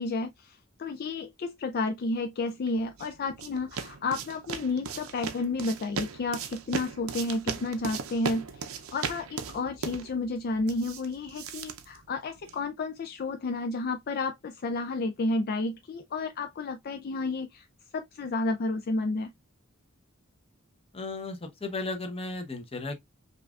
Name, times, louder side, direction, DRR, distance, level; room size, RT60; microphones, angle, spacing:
voice 1, 0.0-17.7 17.9-19.3, left 3 dB, 45° left, 0.4 m, -31 dB
sound 1, 2.7-12.7, right 5 dB, 90° right, 0.6 m, -38 dB
voice 2, 20.9-23.0, left 3 dB, 30° left, 0.8 m, -35 dB
5.3 x 2.4 x 2.4 m
head